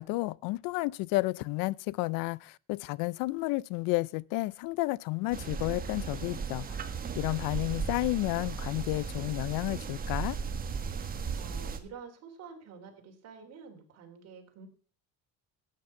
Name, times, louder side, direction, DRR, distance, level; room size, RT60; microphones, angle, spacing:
voice 1, 0.0-6.8 7.2-10.4, left 21 dB, 85° left, 0.6 m, -31 dB
sound 1, 5.3-11.8, right 5 dB, 25° right, 1.5 m, -36 dB
voice 2, 11.0-14.7, right 6 dB, 50° right, 3.8 m, -49 dB
13.0 x 9.3 x 5.6 m
cardioid pair, 155°, 33 cm